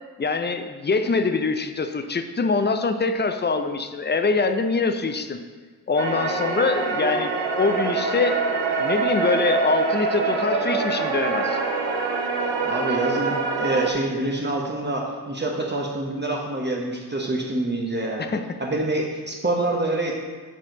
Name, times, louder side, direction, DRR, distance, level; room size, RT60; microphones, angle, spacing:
voice 1, 0.2-5.4 5.9-8.4 8.8-11.6 18.2-18.6, left 4 dB, 25° left, 8 dB, 0.5 m, -24 dB
sound 1, 6.0-13.9, right 4 dB, 80° right, 0.8 m, -25 dB
voice 2, 12.6-18.3 18.6-20.1, right 2 dB, 25° right, -2 dB, 1.0 m, -26 dB
7.3 x 4.3 x 3.9 m, 1.5 s
cardioid pair, 60°, 42 cm